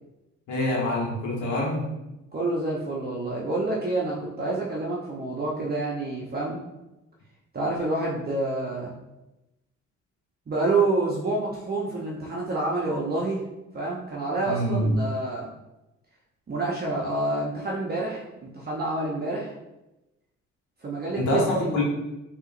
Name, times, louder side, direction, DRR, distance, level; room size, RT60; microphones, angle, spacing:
voice 1, 0.5-1.9 14.5-15.0 21.1-21.8, left 1 dB, 75° left, -2 dB, 1.5 m, -25 dB
voice 2, 2.3-6.6 7.5-8.9 10.5-13.4 13.7-15.5 16.5-19.5 20.8-21.8, right 2 dB, 30° right, -4 dB, 0.8 m, -28 dB
5.7 x 2.9 x 2.5 m, 0.96 s
cardioid pair, 90°, 30 cm